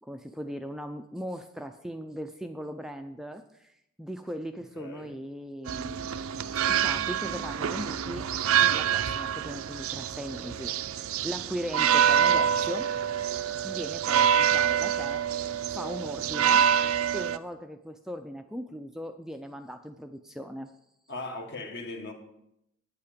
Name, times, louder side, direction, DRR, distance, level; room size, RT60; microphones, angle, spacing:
voice 1, 0.0-3.7 4.0-6.1 6.5-8.3 8.6-12.9 13.6-15.2 15.7-16.7 17.1-20.7, equal, ahead, 0.4 m, -38 dB
voice 2, 4.7-5.1 21.1-22.1, left 2 dB, 50° left, 1.5 m, -38 dB
sound 1, 5.7-17.4, right 8 dB, 65° right, 0.4 m, -26 dB
9.1 x 8.5 x 5.1 m
head